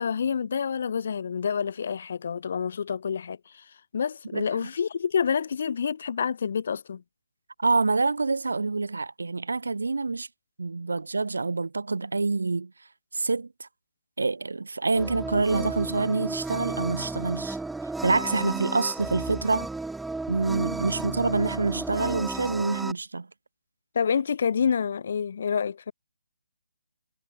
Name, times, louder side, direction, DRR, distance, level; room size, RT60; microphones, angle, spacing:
voice 1, 0.0-3.6 3.9-7.0 23.9-25.9, left 7 dB, 55° left, 0.8 m, -28 dB
voice 2, 4.3-4.7 7.6-10.3 10.6-12.7 13.1-13.7 14.2-17.6 18.0-19.7 20.3-23.3, right 3 dB, 75° right, 0.8 m, -26 dB
sound 1, 14.9-22.9, right 3 dB, 5° right, 2.0 m, -33 dB
figure-of-eight pair, 145°, 0 cm